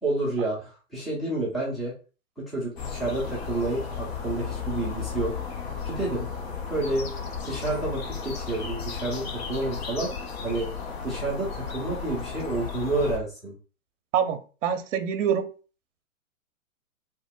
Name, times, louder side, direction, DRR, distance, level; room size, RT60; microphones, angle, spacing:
voice 1, 0.0-1.9 2.5-5.3 5.9-6.3 6.7-7.1 7.4-10.1 10.4-10.7 11.0-13.6, right 2 dB, ahead, -6 dB, 0.5 m, -29 dB
sound 1, 2.8-13.2, left 6 dB, 50° left, 0.7 m, -34 dB
voice 2, 14.1-15.5, right 8 dB, 60° right, 9 dB, 0.6 m, -26 dB
2.8 x 2.1 x 3.6 m, 0.36 s
hypercardioid pair, 125°, 42 cm